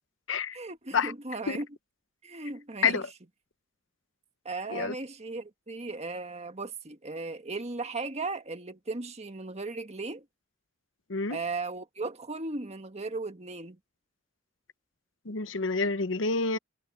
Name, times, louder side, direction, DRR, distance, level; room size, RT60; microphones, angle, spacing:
voice 1, 0.5-1.7 2.2-3.0 4.4-10.2 11.3-13.8, right 3 dB, 35° right, 1.6 m, -36 dB
voice 2, 15.3-16.6, left 4 dB, 75° left, 0.9 m, -28 dB
head